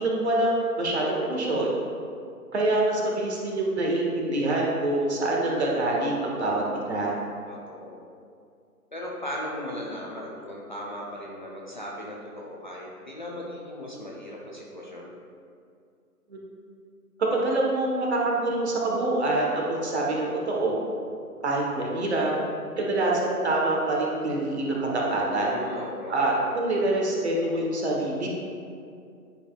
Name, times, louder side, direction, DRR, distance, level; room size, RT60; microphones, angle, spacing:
voice 1, 0.0-1.7 2.5-7.1 16.3-16.4 17.3-20.8 21.4-22.3 22.8-25.5 26.1-28.3, right 2 dB, 45° right, -2 dB, 1.4 m, -25 dB
voice 2, 7.5-8.0 8.9-15.1 25.3-26.2, left 1 dB, 30° left, -4 dB, 0.6 m, -37 dB
9.9 x 5.2 x 2.4 m, 2.4 s
figure-of-eight pair, 150°, 47 cm